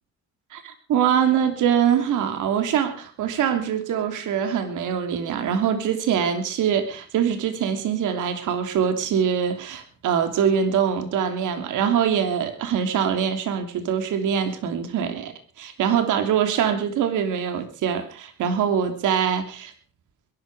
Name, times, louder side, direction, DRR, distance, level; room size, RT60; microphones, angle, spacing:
voice 1, 0.5-19.7, right 8 dB, 85° right, 8 dB, 3.1 m, -23 dB
21.5 x 12.5 x 4.9 m, 0.39 s
cardioid pair, 90°, 30 cm